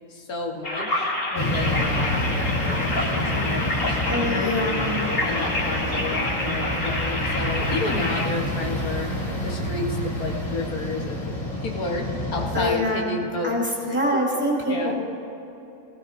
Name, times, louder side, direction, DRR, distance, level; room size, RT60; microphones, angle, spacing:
voice 1, 0.1-4.5 5.2-11.3 11.6-13.6 14.1-14.2 14.7-14.9, left 3 dB, 75° left, 1 dB, 1.6 m, -31 dB
sound 1, 0.6-8.3, left 1 dB, 40° left, 1.7 m, -28 dB
sound 2, 1.3-12.6, left 1 dB, 60° left, 2.6 m, -28 dB
voice 2, 4.0-5.0 12.5-14.9, left 1 dB, 5° right, -4 dB, 2.5 m, -25 dB
19.5 x 15.5 x 2.5 m, 2.8 s
omnidirectional pair, 1.6 m